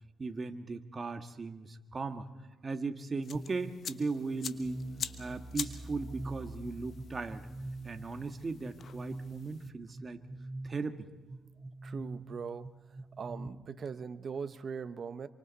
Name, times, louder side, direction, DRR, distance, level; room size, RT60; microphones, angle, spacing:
voice 1, 0.2-2.3 2.6-4.9 5.2-7.5 7.8-10.2 10.6-11.1, right 4 dB, 30° right, 7 dB, 1.7 m, -37 dB
sound 1, 3.2-9.7, left 7 dB, 55° left, 1.2 m, -45 dB
sound 2, 3.3-13.5, right 2 dB, 5° right, 1.0 m, -44 dB
voice 2, 11.8-12.7 13.2-15.3, right 6 dB, 50° right, 12 dB, 1.0 m, -40 dB
27.5 x 25.0 x 4.2 m, 1.3 s
cardioid pair, 90°, 0 cm